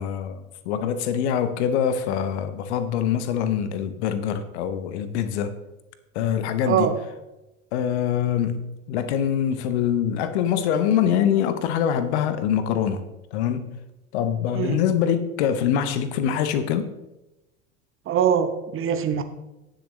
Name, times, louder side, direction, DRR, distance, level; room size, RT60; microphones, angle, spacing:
voice 1, 0.0-5.5 6.1-6.9 7.7-13.0 13.3-13.8 14.1-16.9, left 9 dB, 55° left, 1.0 m, -24 dB
voice 2, 18.1-19.2, right 8 dB, 30° right, 1.0 m, -22 dB
18.0 x 6.5 x 3.2 m
figure-of-eight pair, 75°, 41 cm